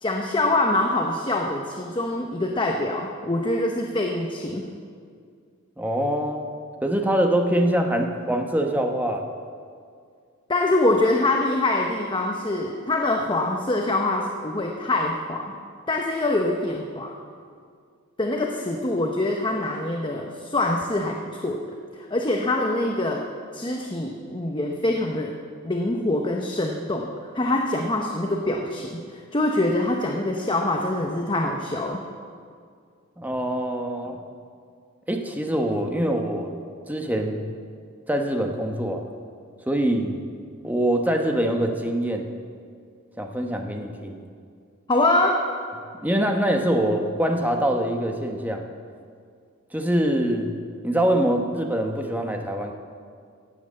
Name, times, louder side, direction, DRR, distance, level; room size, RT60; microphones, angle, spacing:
voice 1, 0.0-4.7 10.5-15.5 15.9-17.1 18.2-21.6 22.0-23.2 23.5-25.3 25.6-32.0 44.9-45.4, left 2 dB, 25° left, 2 dB, 0.9 m, -24 dB
voice 2, 5.8-6.5 6.8-9.2 33.2-34.2 35.1-36.5 36.9-37.4 38.1-39.1 39.6-40.2 40.6-42.3 43.2-44.2 46.0-48.7 49.7-50.5 50.8-52.7, right 1 dB, 10° right, 3 dB, 1.1 m, -24 dB
16.0 x 8.0 x 7.6 m, 2.2 s
head